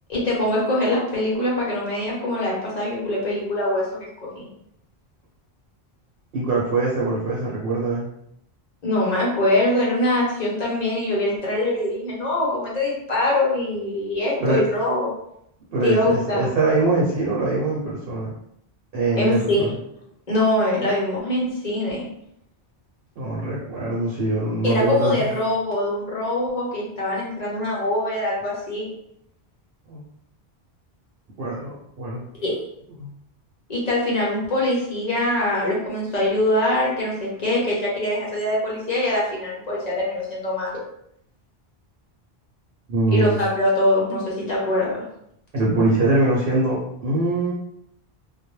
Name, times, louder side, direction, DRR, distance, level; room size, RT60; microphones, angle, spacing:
voice 1, 0.1-4.1 4.4-4.5 8.8-15.1 15.8-16.5 19.1-19.7 20.3-22.1 24.6-28.9 32.4-32.6 33.7-40.8 43.1-45.0, left 1 dB, 45° left, -4 dB, 0.8 m, -23 dB
voice 2, 6.3-8.1 14.4-14.6 15.7-18.3 18.9-19.8 23.1-25.3 29.9-30.0 31.4-32.2 33.0-33.1 42.9-43.4 45.5-47.5, right 2 dB, 65° right, -6 dB, 0.9 m, -23 dB
2.2 x 2.1 x 3.0 m, 0.75 s
omnidirectional pair, 1.0 m